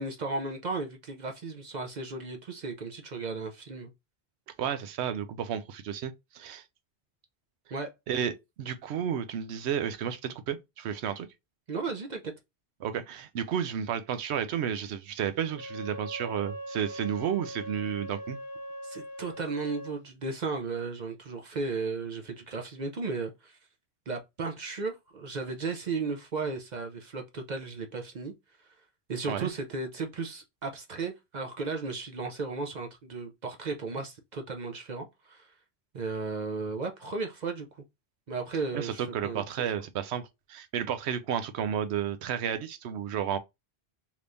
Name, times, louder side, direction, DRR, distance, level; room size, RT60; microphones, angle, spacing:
voice 1, 0.0-3.9 7.7-7.9 8.2-8.3 11.7-12.3 18.8-23.6 24.1-28.3 29.1-35.5 35.9-37.7 38.3-39.7, right 4 dB, 50° right, 0.6 m, -35 dB
voice 2, 4.6-6.6 8.1-8.3 8.6-11.3 12.8-18.4 29.3-29.5 38.7-40.2 40.5-43.4, right 8 dB, 80° right, 0.9 m, -32 dB
Wind instrument woodwind instrument, 15.5-20.0, right 1 dB, 70° left, 1.0 m, -41 dB
3.4 x 2.9 x 2.5 m
omnidirectional pair, 1.1 m